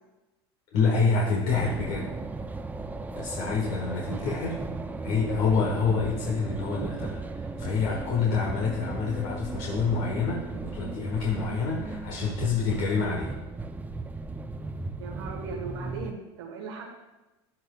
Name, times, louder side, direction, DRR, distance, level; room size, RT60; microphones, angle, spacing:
voice 1, 0.7-2.1 3.1-4.7 5.0-13.3, left 5 dB, 65° left, -3 dB, 1.4 m, -27 dB
sound 1, 1.5-16.1, right 3 dB, 10° right, 0.4 m, -36 dB
voice 2, 15.0-16.9, right 4 dB, 85° right, -1 dB, 1.3 m, -38 dB
10.5 x 8.2 x 2.3 m, 1.1 s
supercardioid pair, 100°, 14 cm